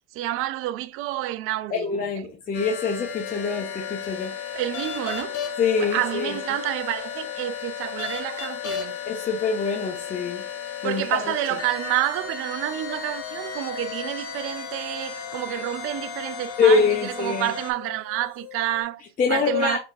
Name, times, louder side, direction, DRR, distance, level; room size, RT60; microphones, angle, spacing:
voice 1, 0.1-1.9 4.5-5.4 5.8-9.0 10.8-19.0 19.3-19.8, right 14 dB, 40° right, 0.5 m, -29 dB
voice 2, 1.7-4.3 5.6-6.4 9.1-10.4 10.8-11.3 16.6-17.5 19.2-19.8, left 5 dB, 25° left, 0.8 m, -24 dB
sound 1, 2.5-17.7, left 7 dB, 40° left, 1.1 m, -35 dB
sound 2, 3.2-18.8, left 8 dB, 5° right, 1.9 m, -45 dB
4.9 x 3.5 x 2.6 m
hypercardioid pair, 90°, 34 cm